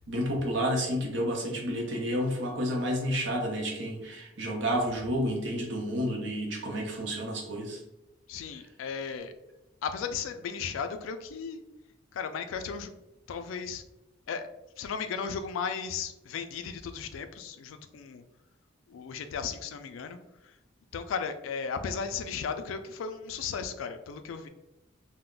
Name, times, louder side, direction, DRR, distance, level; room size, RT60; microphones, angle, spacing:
voice 1, 0.1-7.8, equal, 70° right, 0 dB, 0.7 m, -30 dB
voice 2, 8.3-9.3 9.8-11.6 12.1-12.9 13.3-13.8 14.3-14.5 14.8-18.2 18.9-20.2 20.9-24.5, left 6 dB, 85° left, 9 dB, 0.3 m, -35 dB
2.3 x 2.0 x 3.7 m, 0.93 s
head